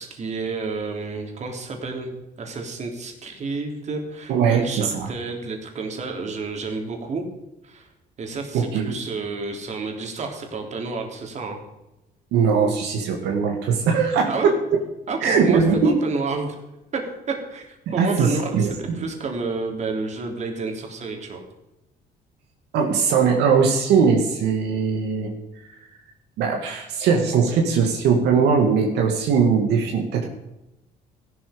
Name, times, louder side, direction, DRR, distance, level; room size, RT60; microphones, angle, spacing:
voice 1, 0.0-2.1 2.4-7.3 7.6-7.9 8.2-11.6 14.3-14.5 15.1-16.6 16.9-21.4, right 3 dB, 45° right, 3 dB, 3.5 m, -30 dB
voice 2, 4.3-5.1 8.5-8.9 12.3-14.6 15.2-15.9 17.9-19.0 22.7-25.3 25.7-25.8 26.4-30.3, right 6 dB, 80° right, 2 dB, 2.3 m, -20 dB
15.0 x 12.0 x 5.2 m, 0.93 s
cardioid pair, 110°, 17 cm